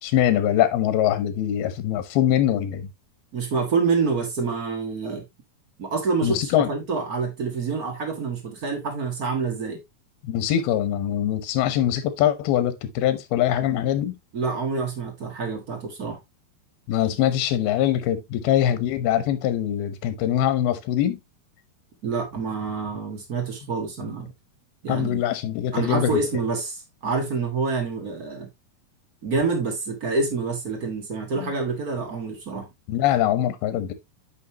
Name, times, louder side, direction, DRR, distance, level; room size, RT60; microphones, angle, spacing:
voice 1, 0.0-2.9 6.2-6.7 10.2-14.1 16.9-21.2 24.9-26.2 31.4-31.5 32.9-33.9, left 11 dB, 80° left, 2.9 m, -23 dB
voice 2, 3.3-5.2 5.8-9.8 14.3-16.2 22.0-24.3 24.8-25.2 25.7-28.5 29.2-32.7, right 4 dB, 60° right, 0.9 m, -27 dB
9.2 x 5.6 x 2.9 m
omnidirectional pair, 4.5 m